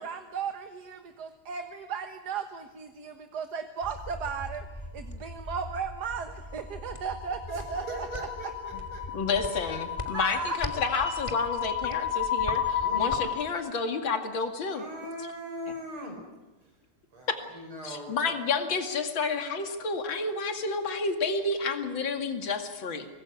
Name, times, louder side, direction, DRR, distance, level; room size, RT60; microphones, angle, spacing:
voice 1, 0.0-4.7 4.9-8.3 10.1-10.6, right 6 dB, 55° right, 7 dB, 1.8 m, -35 dB
sound 1, 3.8-13.5, left 7 dB, 15° left, 2.0 m, -33 dB
voice 2, 7.5-9.8 12.8-13.8 14.7-16.2 17.1-18.4, equal, 85° right, 2 dB, 7.0 m, -41 dB
voice 3, 9.1-14.8 17.3-17.4 17.8-23.1, left 4 dB, 65° left, 5 dB, 3.0 m, -30 dB
25.5 x 20.0 x 9.7 m, 1.2 s
omnidirectional pair, 2.3 m